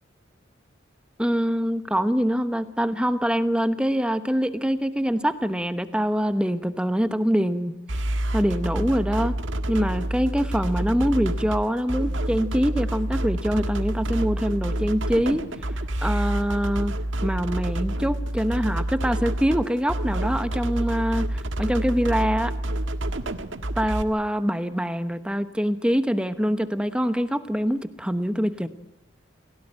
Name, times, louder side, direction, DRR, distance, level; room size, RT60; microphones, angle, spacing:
voice 1, 1.2-7.7 8.3-9.3 9.7-15.4 16.0-17.0 17.2-22.5 23.8-28.7, equal, 5° right, 10 dB, 1.0 m, -24 dB
sound 1, 7.9-24.0, right 1 dB, 80° right, 1.6 m, -28 dB
28.5 x 17.0 x 8.9 m, 1.0 s
head